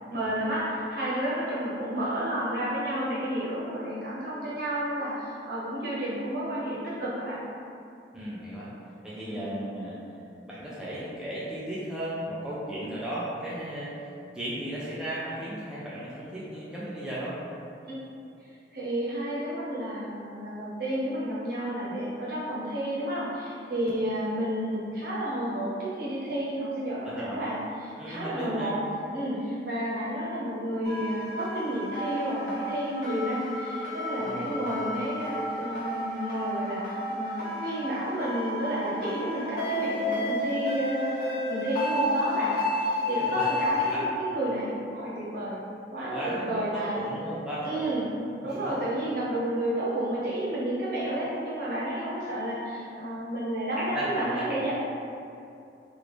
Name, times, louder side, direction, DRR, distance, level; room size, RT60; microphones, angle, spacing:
voice 1, 0.1-7.4 9.3-9.5 17.8-17.9 18.4-28.8 29.1-41.2 41.5-45.6 45.9-47.1 47.6-48.1 48.4-54.7, right 1 dB, 55° right, -8 dB, 0.9 m, -31 dB
voice 2, 8.1-8.7 9.0-10.0 10.5-17.4 27.0-27.4 27.9-28.8 34.2-34.8 43.3-43.5 43.8-44.0 46.0-47.9 53.8-54.7, right 1 dB, 5° right, -9 dB, 0.4 m, -35 dB
sound 1, 30.8-43.9, left 1 dB, 45° left, 1.1 m, -31 dB
3.4 x 2.4 x 3.1 m, 2.6 s
head